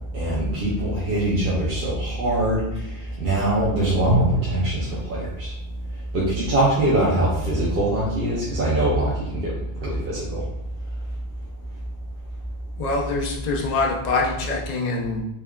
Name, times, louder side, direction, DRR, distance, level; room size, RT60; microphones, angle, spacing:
voice 1, 0.1-2.6 3.2-5.5 6.1-9.5 9.8-10.4, right 1 dB, 65° right, -7 dB, 1.0 m, -23 dB
Drum, 4.1-7.0, equal, 85° right, 1.8 m, -29 dB
voice 2, 12.8-15.2, left 3 dB, 45° left, -2 dB, 0.7 m, -24 dB
3.6 x 3.3 x 2.3 m, 0.84 s
omnidirectional pair, 1.1 m